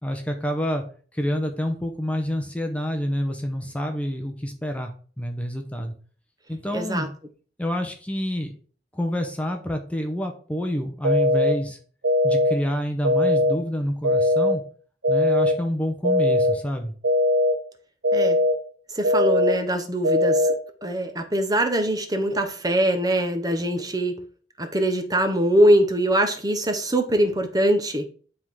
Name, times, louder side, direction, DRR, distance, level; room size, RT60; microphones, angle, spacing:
voice 1, 0.0-0.8 1.1-5.9 6.5-7.1 7.6-8.6 8.9-11.8 12.2-14.6 15.1-16.9, equal, 10° left, 4 dB, 0.8 m, -28 dB
voice 2, 6.7-7.1 18.1-18.4 18.9-20.5 20.8-24.2 24.6-28.0, right 1 dB, 20° right, 6 dB, 1.0 m, -22 dB
sound 1, 11.0-11.5 12.0-12.5 13.0-13.5 14.0-14.5 15.0-15.5 16.0-16.5 17.0-17.5 18.0-18.5 19.0-19.5 20.0-20.5, left 1 dB, 80° right, 1.3 m, -20 dB
9.7 x 3.8 x 4.8 m, 0.42 s
head